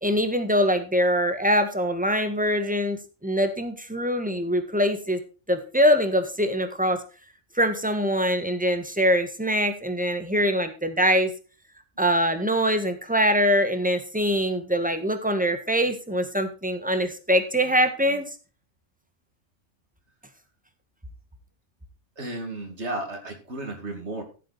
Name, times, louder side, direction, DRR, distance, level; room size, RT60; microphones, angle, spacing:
voice 1, 0.0-5.2 5.5-7.0 7.5-11.3 12.0-18.2, equal, 5° right, 8 dB, 1.5 m, -23 dB
voice 2, 22.2-24.2, right 2 dB, 60° right, 3 dB, 2.6 m, -33 dB
14.5 x 7.7 x 4.1 m, 0.35 s
omnidirectional pair, 1.3 m